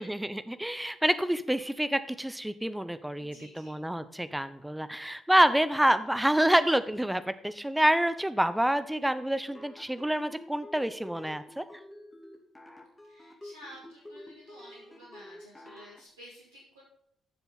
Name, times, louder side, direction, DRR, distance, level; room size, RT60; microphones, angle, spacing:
voice 1, 0.0-11.6, right 1 dB, 5° right, 13 dB, 0.8 m, -27 dB
voice 2, 3.1-3.7 13.1-16.8, equal, 80° right, -7 dB, 2.1 m, -52 dB
sound 1, 9.5-16.0, left 1 dB, 15° left, 2.2 m, -49 dB
11.5 x 7.0 x 4.1 m, 0.73 s
figure-of-eight pair, 40°, 0 cm